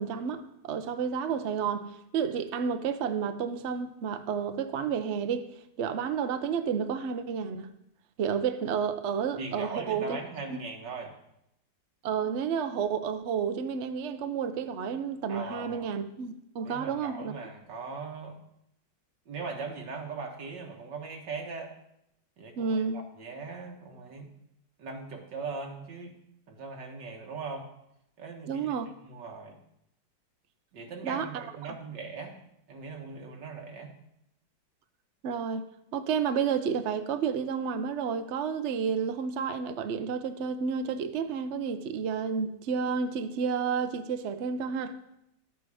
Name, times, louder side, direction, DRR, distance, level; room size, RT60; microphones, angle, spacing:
voice 1, 0.0-5.5 5.8-7.7 8.2-10.2 10.5-10.6 12.0-17.3 22.6-23.0 28.5-28.9 31.0-31.5 35.2-35.6 35.9-45.0, right 6 dB, 55° right, 0.8 m, -31 dB
voice 2, 9.4-11.2 15.3-15.9 16.6-18.4 19.3-21.7 22.4-24.3 24.8-26.2 26.5-27.7 28.2-28.7 29.0-29.6 30.7-32.4 32.7-33.9, right 4 dB, 85° right, 2.2 m, -39 dB
12.0 x 8.3 x 4.9 m
omnidirectional pair, 1.9 m